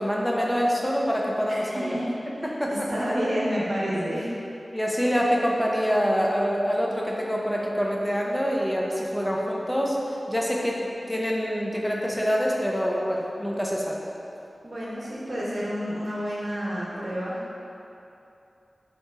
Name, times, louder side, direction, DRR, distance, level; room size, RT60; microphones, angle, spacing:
voice 1, 0.0-2.0 2.4-2.9 4.7-10.8 11.1-14.0, equal, 10° left, -2 dB, 0.5 m, -25 dB
voice 2, 1.5-2.1 2.4-4.3 14.6-17.3, equal, 50° right, -7 dB, 1.0 m, -29 dB
4.3 x 2.9 x 3.4 m, 2.8 s
wide cardioid pair, 75°, 0 cm